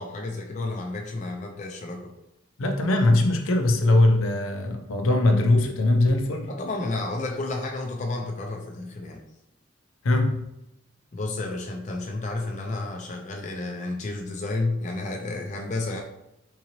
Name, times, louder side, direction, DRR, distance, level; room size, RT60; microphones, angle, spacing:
voice 1, 0.0-2.1 6.5-9.2 11.1-16.0, left 2 dB, 35° left, 1 dB, 0.3 m, -31 dB
voice 2, 2.6-6.5 10.0-10.5, left 2 dB, 90° left, 4 dB, 0.5 m, -21 dB
3.7 x 2.8 x 2.9 m, 0.89 s
head